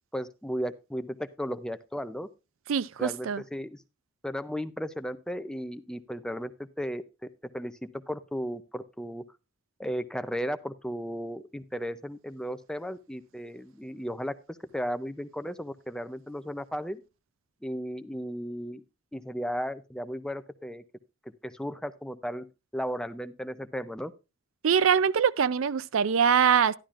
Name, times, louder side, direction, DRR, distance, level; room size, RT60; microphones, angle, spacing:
voice 1, 0.1-2.3 3.0-3.8 4.2-7.0 7.5-9.2 9.8-17.0 17.6-18.8 19.1-20.8 21.4-22.5 22.7-24.1, equal, 5° left, 0.4 m, -35 dB
voice 2, 2.7-3.4 24.6-26.8, right 7 dB, 75° right, 0.4 m, -23 dB
12.0 x 11.5 x 2.5 m
head